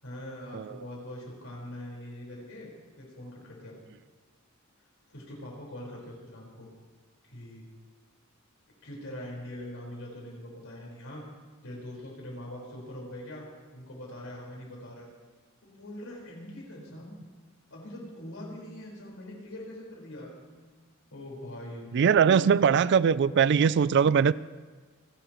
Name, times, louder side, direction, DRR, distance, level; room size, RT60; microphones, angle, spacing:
voice 1, 0.0-2.7 3.0-3.8 5.1-6.7 7.3-7.7 8.8-11.2 11.6-13.5 13.7-15.1 15.6-17.2 17.7-20.7 21.1-21.9 22.2-22.5, left 1 dB, 75° left, -2 dB, 4.7 m, -42 dB
voice 2, 21.9-24.3, right 7 dB, 55° right, 18 dB, 0.3 m, -21 dB
30.0 x 11.5 x 3.1 m, 1.4 s
head